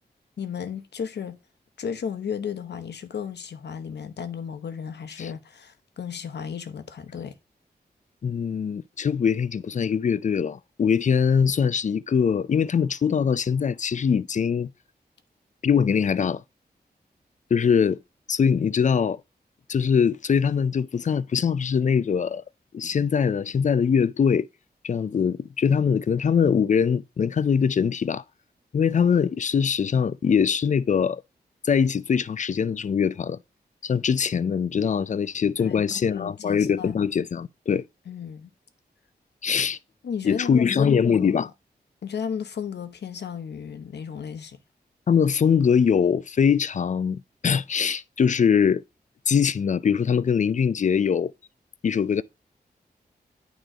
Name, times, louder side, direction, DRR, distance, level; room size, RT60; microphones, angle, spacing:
voice 1, 0.4-1.4 1.8-7.4 35.6-37.0 38.1-38.5 40.0-41.3 42.0-44.6, left 7 dB, 80° left, 0.8 m, -34 dB
voice 2, 8.2-14.7 15.6-16.4 17.5-18.0 18.3-19.2 19.7-22.4 22.7-24.5 24.8-28.2 28.7-31.2 31.6-33.4 33.8-37.8 39.4-39.8 40.2-41.5 45.1-48.8 49.3-51.3 51.8-52.2, left 7 dB, 45° left, 0.4 m, -22 dB
9.1 x 3.1 x 4.8 m
cardioid pair, 60°, 17 cm